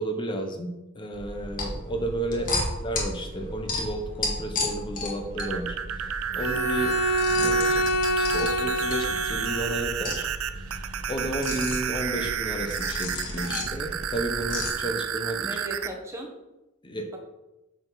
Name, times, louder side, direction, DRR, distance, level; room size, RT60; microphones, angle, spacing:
voice 1, 0.0-2.5 2.8-6.9 7.4-7.8 8.1-10.3 10.6-10.7 11.1-15.5 16.8-17.2, right 1 dB, 20° left, 4 dB, 1.0 m, -32 dB
sound 1, 1.1-14.7, left 2 dB, 40° left, 1.8 m, -34 dB
sound 2, 5.2-15.9, right 8 dB, 70° right, 0.5 m, -31 dB
Bowed string instrument, 6.4-9.9, equal, 85° left, 1.0 m, -26 dB
voice 2, 7.4-7.7 15.4-16.3, right 1 dB, 15° right, 1 dB, 1.2 m, -38 dB
6.9 x 6.6 x 4.1 m, 0.97 s
head